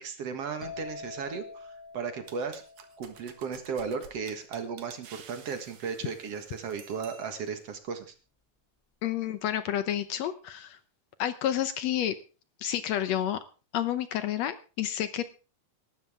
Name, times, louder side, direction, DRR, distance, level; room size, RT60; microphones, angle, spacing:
voice 1, 0.0-2.6 3.0-8.1, right 5 dB, 55° right, 8 dB, 2.5 m, -35 dB
sound 1, 0.6-4.2, left 4 dB, 5° left, 1.2 m, -46 dB
sound 2, 2.3-7.6, right 8 dB, 75° right, 2.9 m, -52 dB
voice 2, 9.0-10.8 11.2-12.2 12.6-13.4 13.7-15.3, left 11 dB, 70° left, 12 dB, 1.8 m, -30 dB
18.5 x 13.0 x 3.6 m, 0.35 s
omnidirectional pair, 3.5 m